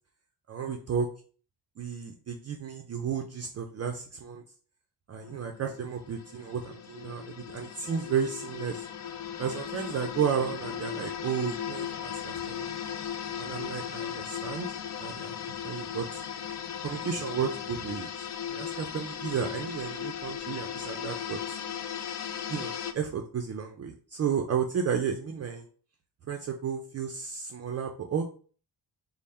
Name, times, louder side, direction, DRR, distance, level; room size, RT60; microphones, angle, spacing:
voice 1, 0.5-1.1 1.8-4.4 5.1-8.8 9.4-12.7 13.4-14.7 15.0-15.3 15.6-16.1 16.8-18.1 18.5-21.6 22.5-25.7 26.3-28.2, right 7 dB, 40° right, 2 dB, 0.4 m, -33 dB
sound 1, 5.2-22.9, left 9 dB, 45° left, 0.4 m, -37 dB
3.4 x 2.0 x 4.1 m, 0.41 s
cardioid pair, 115°, 41 cm